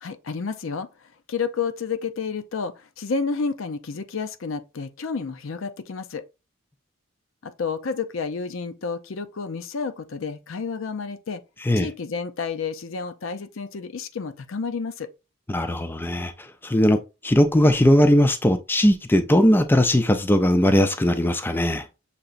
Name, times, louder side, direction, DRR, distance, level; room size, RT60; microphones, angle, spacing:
voice 1, 0.0-6.2 7.4-11.4 11.8-15.1, left 5 dB, 75° left, 0.5 m, -30 dB
voice 2, 15.5-17.0 17.2-21.9, left 1 dB, 10° left, 0.4 m, -19 dB
6.7 x 2.9 x 2.5 m
head